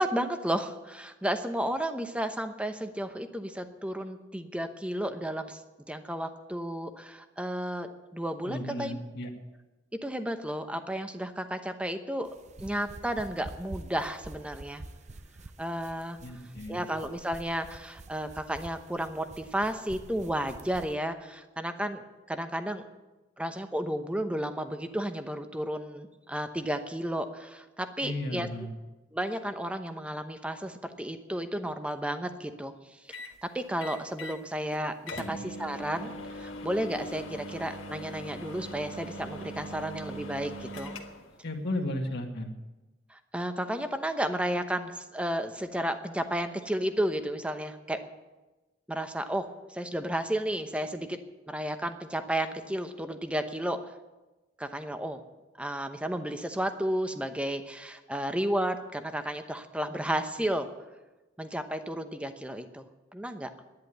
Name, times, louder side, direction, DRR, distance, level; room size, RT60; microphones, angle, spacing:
voice 1, 0.0-5.6 5.9-9.0 10.0-12.3 12.6-14.8 15.6-16.2 16.7-22.8 23.4-28.5 29.1-32.7 33.1-40.9 43.1-48.0 48.9-51.2 51.5-53.8 54.6-55.2 55.6-60.7 61.4-62.8 63.1-63.5, right 1 dB, 5° right, 8 dB, 0.9 m, -32 dB
voice 2, 8.5-9.3 16.2-16.8 28.0-28.7 35.2-35.3 41.4-42.5, left 1 dB, 60° left, 3 dB, 1.9 m, -34 dB
sound 1, 12.3-20.9, right 2 dB, 40° right, 0.7 m, -47 dB
sound 2, 33.1-33.4 33.8-34.4 34.7-34.8 35.1-41.3, equal, 85° left, 1.5 m, -41 dB
10.5 x 10.5 x 9.3 m, 1.1 s
head